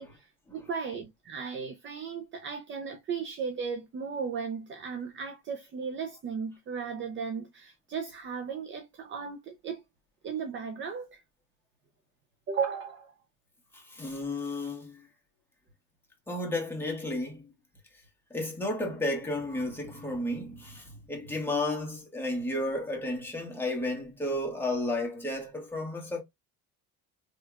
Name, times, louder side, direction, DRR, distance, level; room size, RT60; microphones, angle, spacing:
voice 1, 0.0-9.8 10.2-11.2 12.5-13.1, right 6 dB, 35° right, 0.6 m, -36 dB
voice 2, 13.7-15.1 16.3-17.5 18.3-26.2, left 1 dB, 5° left, 1.5 m, -33 dB
3.4 x 3.1 x 2.3 m
cardioid pair, 115°, 33 cm